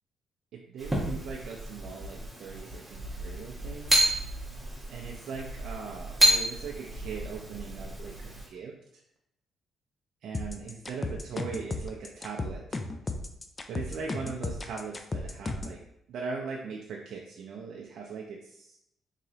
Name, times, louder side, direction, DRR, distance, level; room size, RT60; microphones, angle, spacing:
voice 1, 0.7-3.9 4.9-9.0 10.2-12.8 13.7-15.8 16.1-18.8, right 5 dB, 70° right, -1 dB, 0.4 m, -40 dB
sound 1, 0.8-8.5, right 1 dB, 10° right, 1.1 m, -30 dB
sound 2, 10.3-15.8, left 2 dB, 30° left, 0.4 m, -34 dB
3.8 x 3.0 x 2.7 m, 0.77 s
cardioid pair, 90°, 0 cm